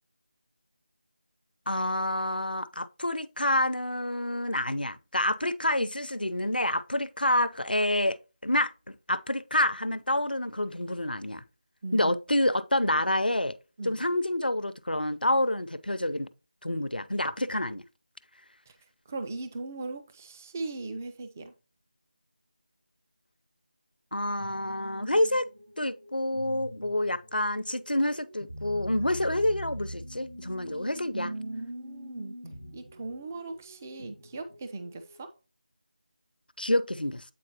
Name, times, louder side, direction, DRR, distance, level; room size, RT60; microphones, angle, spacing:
voice 1, 1.7-11.4 11.9-13.5 13.8-16.3 16.6-17.8 24.1-25.5 25.8-31.3 36.6-37.2, left 1 dB, 90° left, 0.7 m, -28 dB
voice 2, 19.1-21.5 31.1-32.4 32.7-35.3, right 3 dB, 15° right, 0.4 m, -38 dB
sound 1, 24.4-35.2, equal, 90° right, 2.5 m, -44 dB
8.4 x 4.4 x 2.8 m
figure-of-eight pair, 165°, 5 cm